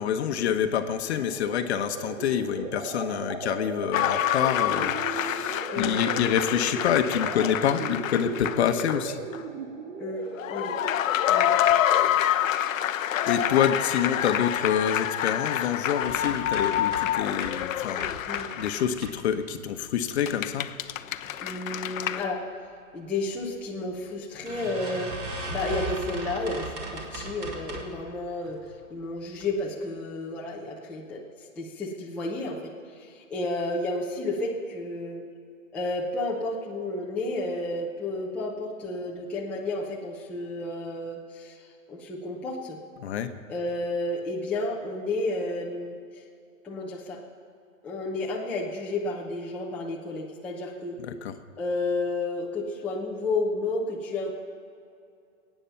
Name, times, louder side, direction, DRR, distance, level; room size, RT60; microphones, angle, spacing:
voice 1, 0.0-9.2 13.3-18.1 18.6-20.7 43.0-43.3 51.1-51.3, left 9 dB, 50° left, 8 dB, 1.0 m, -27 dB
sound 1, 1.2-11.2, right 4 dB, 55° right, 1.7 m, -37 dB
sound 2, 3.9-9.1 9.3-9.4 10.3-19.0 20.1-22.2, left 11 dB, 65° left, 0.7 m, -27 dB
voice 2, 10.0-10.8 11.3-11.5 18.2-18.6 21.4-22.4 22.9-25.2 25.5-28.6 28.9-31.2 31.6-35.2 35.7-41.6 41.9-42.8 43.5-46.2 46.6-47.2 47.8-51.0 51.6-54.3, left 2 dB, 5° left, -4 dB, 0.6 m, -31 dB
sound 3, 16.0-17.6 18.0-19.6 20.1-20.7 21.1-21.5 21.8-21.9 22.2-22.3 23.3-23.4 23.8-23.9 24.5-28.0 28.5-28.9 29.4-29.5 29.8-29.9, right 2 dB, 25° right, 1.8 m, -38 dB
21.5 x 9.2 x 5.7 m, 2.5 s
hypercardioid pair, 155°, 43 cm